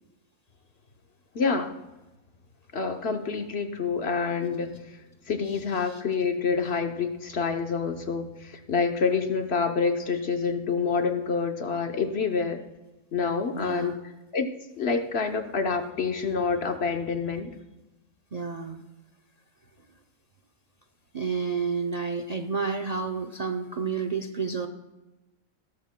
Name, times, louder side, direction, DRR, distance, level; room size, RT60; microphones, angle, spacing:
voice 1, 1.3-1.7 2.7-4.9 5.3-12.6 13.1-13.9 14.3-14.5 14.8-17.5, left 5 dB, 55° left, 6 dB, 1.0 m, -27 dB
voice 2, 13.5-14.0 18.3-18.8 21.1-24.7, right 5 dB, 45° right, 6 dB, 0.5 m, -30 dB
17.0 x 13.0 x 2.2 m, 1.1 s
omnidirectional pair, 1.4 m